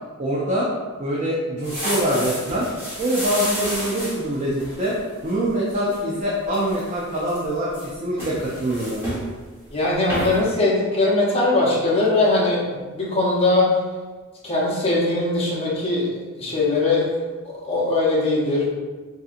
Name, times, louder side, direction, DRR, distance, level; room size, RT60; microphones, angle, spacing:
voice 1, 0.2-0.7 1.0-2.6 3.0-4.9 5.2-9.0, right 1 dB, 30° right, -5 dB, 0.5 m, -24 dB
sound 1, 1.6-5.3 5.7-6.0 6.4-7.5 7.7-9.3 9.7-9.8 10.1-10.5, equal, 10° right, 1.0 m, -31 dB
voice 2, 9.7-13.8 14.4-17.1 17.4-18.7, left 2 dB, 25° left, -5 dB, 0.8 m, -21 dB
4.6 x 2.7 x 2.4 m, 1.3 s
head